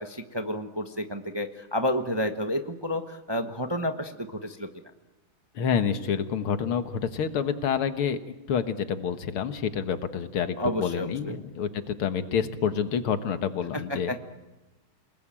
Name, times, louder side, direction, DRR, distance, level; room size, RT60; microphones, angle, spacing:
voice 1, 0.0-4.7 10.6-11.4 13.7-14.2, equal, 15° right, 6 dB, 0.8 m, -30 dB
voice 2, 5.6-8.2 8.5-14.1, left 7 dB, 90° left, 9 dB, 2.3 m, -28 dB
28.5 x 19.5 x 8.9 m, 1.1 s
omnidirectional pair, 2.3 m